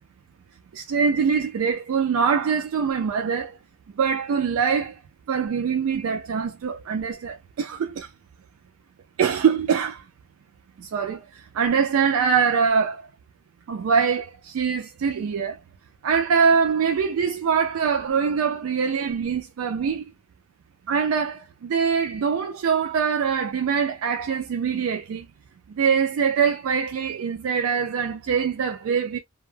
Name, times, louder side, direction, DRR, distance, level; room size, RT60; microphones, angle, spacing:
voice 1, 0.7-3.5 4.0-5.0 5.3-8.1 9.2-10.1 10.8-13.1 13.7-15.6 16.0-20.1 20.9-25.3 25.7-29.2, right 6 dB, 70° right, 0.3 m, -23 dB
2.2 x 2.0 x 3.1 m
head